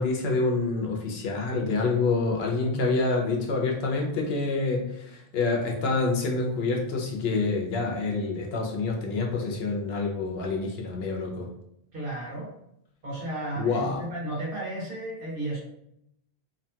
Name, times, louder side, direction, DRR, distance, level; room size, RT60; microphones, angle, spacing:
voice 1, 0.0-11.5 13.6-14.0, left 3 dB, 75° left, 0 dB, 0.9 m, -27 dB
voice 2, 11.9-12.5 13.0-15.6, right 1 dB, 60° right, -4 dB, 1.2 m, -33 dB
2.7 x 2.2 x 2.7 m, 0.76 s
omnidirectional pair, 1.1 m